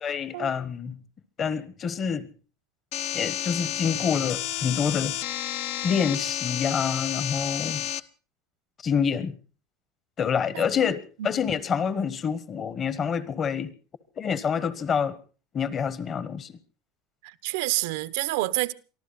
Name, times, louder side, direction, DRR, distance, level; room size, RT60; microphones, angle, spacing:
voice 1, 0.0-1.0 1.4-2.3 3.1-5.2 5.8-7.8 8.8-9.4 10.2-13.7 14.2-15.2 15.5-16.5, left 7 dB, 25° left, 1.1 m, -27 dB
sound 1, 2.9-8.0, left 12 dB, 60° left, 0.8 m, -31 dB
voice 2, 17.2-18.7, right 19 dB, 75° right, 0.9 m, -28 dB
23.5 x 14.5 x 4.1 m
supercardioid pair, 155°, 0 cm